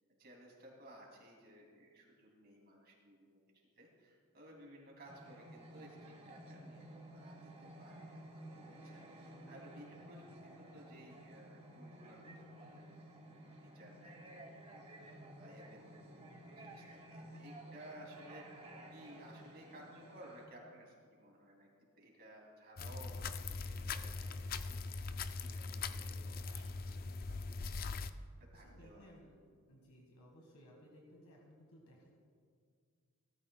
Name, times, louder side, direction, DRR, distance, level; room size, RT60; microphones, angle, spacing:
voice 1, 0.2-3.4 3.8-18.7 18.9-21.7 21.9-27.4 28.4-29.1, right 1 dB, 45° right, -1 dB, 2.7 m, -58 dB
sound 1, 5.1-20.5, right 1 dB, 30° right, 1.3 m, -54 dB
sound 2, 22.8-28.1, left 4 dB, 40° left, 0.4 m, -41 dB
voice 2, 28.5-29.3 29.7-32.1, equal, 80° left, -1 dB, 1.6 m, -60 dB
17.5 x 13.0 x 2.2 m, 2.1 s
head